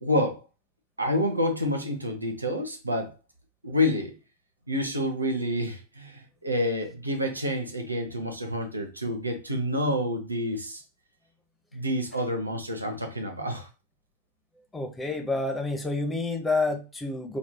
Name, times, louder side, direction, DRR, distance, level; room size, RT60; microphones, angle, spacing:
voice 1, 0.0-0.4 1.0-3.1 3.6-4.1 4.7-10.8 11.7-13.7, left 1 dB, 85° right, 4 dB, 0.8 m, -28 dB
voice 2, 14.7-17.4, left 3 dB, 10° left, 4 dB, 0.7 m, -28 dB
5.1 x 3.0 x 2.2 m, 0.31 s
figure-of-eight pair, 90°, 0 cm